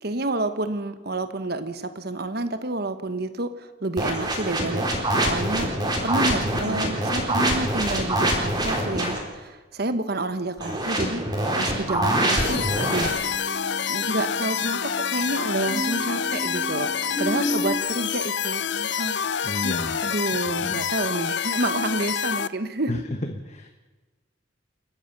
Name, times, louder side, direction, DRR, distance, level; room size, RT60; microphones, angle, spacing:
voice 1, 0.0-4.9 5.1-5.7 6.0-11.3 11.6-13.2 13.9-16.9 17.2-19.2 19.6-23.0, right 2 dB, 55° right, 10 dB, 1.2 m, -29 dB
sound 1, 4.0-9.2 10.6-13.1, right 1 dB, 20° right, 4.1 m, -25 dB
voice 2, 6.5-6.9 19.4-20.0 20.5-20.8 22.9-23.0 23.4-23.7, left 1 dB, 35° left, 6 dB, 1.2 m, -32 dB
sound 2, 11.9-17.8, equal, 80° right, 4.3 m, -34 dB
sound 3, 12.4-22.5, left 7 dB, 60° left, 0.6 m, -27 dB
29.0 x 13.5 x 6.8 m, 1.2 s
head